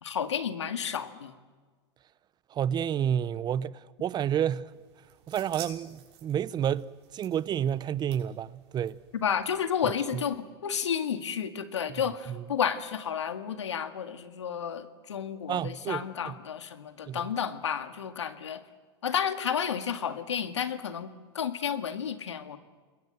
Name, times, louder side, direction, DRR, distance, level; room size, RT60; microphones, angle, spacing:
voice 1, 0.0-1.3 9.1-18.6 19.0-22.6, left 8 dB, 85° left, 2.0 m, -31 dB
voice 2, 2.5-4.7 5.3-9.0 10.1-10.2 11.9-12.0 12.3-12.4 15.5-16.4 17.1-17.3, right 9 dB, 30° right, 0.9 m, -30 dB
sound 1, 4.7-9.9, right 10 dB, 60° right, 6.6 m, -50 dB
29.0 x 21.5 x 7.9 m
hypercardioid pair, 100°, 15 cm